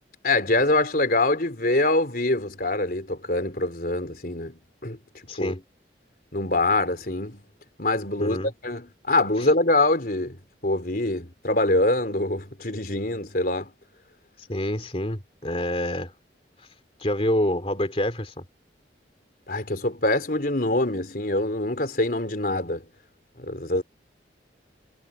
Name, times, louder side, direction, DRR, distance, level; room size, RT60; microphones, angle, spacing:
voice 1, 0.2-5.0 5.4-5.5 6.3-7.4 7.8-8.4 8.6-10.4 10.6-13.7 19.5-22.8 23.4-23.8, left 2 dB, 50° left, 3.9 m, -24 dB
voice 2, 5.3-5.6 8.2-8.5 9.4-9.5 14.5-16.1 17.0-18.5, left 1 dB, 30° left, 2.8 m, -27 dB
head